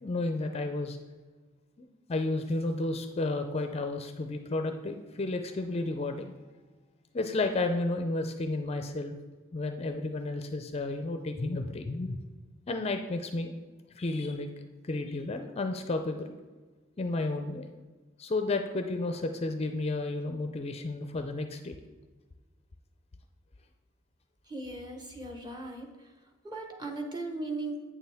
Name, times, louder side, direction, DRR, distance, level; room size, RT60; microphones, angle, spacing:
voice 1, 0.0-1.0 1.8-6.3 7.1-9.1 9.5-12.2 12.7-13.6 13.9-14.5 14.8-16.4 17.0-17.7 18.2-21.7, left 2 dB, 30° left, 6 dB, 0.4 m, -32 dB
voice 2, 24.5-25.9 26.4-27.8, right 2 dB, 20° right, 2 dB, 1.0 m, -37 dB
8.7 x 6.8 x 3.4 m, 1.3 s
head